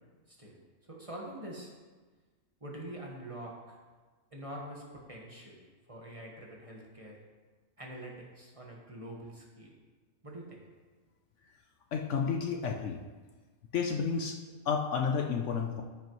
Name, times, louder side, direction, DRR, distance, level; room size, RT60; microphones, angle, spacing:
voice 1, 0.3-0.6 0.9-1.7 2.6-3.8 4.3-5.6 5.9-7.2 7.8-9.8 10.2-10.6, right 1 dB, 25° right, -2 dB, 1.2 m, -45 dB
voice 2, 11.9-13.0 13.7-14.4 14.7-15.8, left 6 dB, 65° left, 3 dB, 0.9 m, -31 dB
14.5 x 5.4 x 3.1 m, 1.4 s
omnidirectional pair, 1.5 m